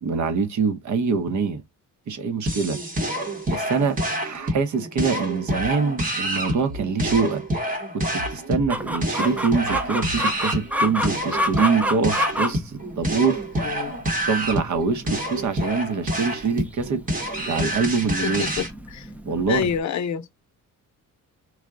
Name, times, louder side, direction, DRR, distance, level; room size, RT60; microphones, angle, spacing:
voice 1, 0.0-1.6 2.1-2.8 3.5-7.4 7.9-13.8 14.3-17.0 17.5-18.6 19.2-19.7, right 5 dB, 60° right, 0.8 m, -24 dB
sound 1, 2.5-18.7, right 1 dB, 25° right, 0.9 m, -28 dB
sound 2, 5.5-5.7 6.6-7.2 8.1-8.7 9.6-10.2, left 1 dB, 75° right, 1.3 m, -36 dB
Chicken rooster, 8.7-19.8, equal, 5° right, 0.3 m, -30 dB
voice 2, 13.6-14.0 18.2-19.1 19.5-20.2, left 7 dB, 55° left, 0.6 m, -27 dB
4.7 x 2.1 x 3.6 m
wide cardioid pair, 155°, 33 cm